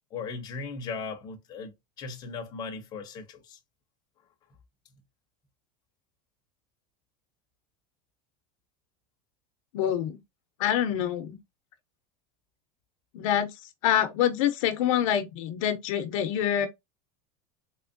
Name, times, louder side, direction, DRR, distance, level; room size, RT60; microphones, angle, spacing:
voice 1, 0.1-1.7 2.0-3.6, left 4 dB, 20° left, 0.7 m, -37 dB
voice 2, 9.7-10.2 10.6-11.4 13.1-13.5 13.8-16.7, left 10 dB, 60° left, 0.7 m, -26 dB
3.6 x 2.9 x 2.6 m
supercardioid pair, 170°, 18 cm